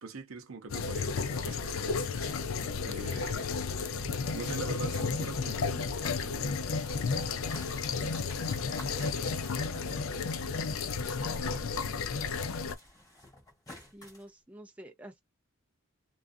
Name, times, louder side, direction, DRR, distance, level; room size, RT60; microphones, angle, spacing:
voice 1, 0.0-2.4 2.8-3.5 4.3-8.5 8.9-10.3 11.2-12.0, right 4 dB, 75° right, 0.7 m, -45 dB
sound 1, 0.7-12.8, left 4 dB, 70° left, 0.4 m, -33 dB
sound 2, 6.8-11.7 12.0-14.3, left 1 dB, 15° left, 1.3 m, -51 dB
voice 2, 13.9-15.2, right 1 dB, 5° right, 0.4 m, -49 dB
2.3 x 2.3 x 2.5 m
head